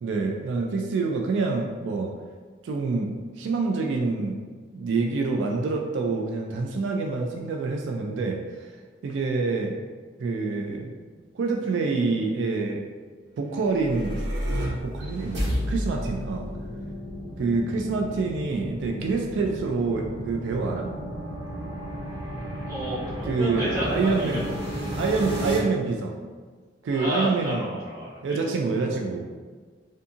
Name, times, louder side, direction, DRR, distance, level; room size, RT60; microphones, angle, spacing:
voice 1, 0.0-2.1 2.6-4.4 4.7-8.7 9.0-9.8 10.2-10.9 11.3-12.9 13.4-14.2 14.5-16.5 17.4-20.9 23.2-24.5 25.0-26.1 26.8-27.7 28.2-29.3, right 3 dB, 90° right, 1 dB, 0.3 m, -27 dB
sound 1, 13.5-25.6, equal, 70° right, 1.0 m, -33 dB
voice 2, 22.7-24.6 26.9-28.4, equal, 20° right, -13 dB, 1.4 m, -31 dB
2.7 x 2.6 x 2.4 m, 1.5 s
head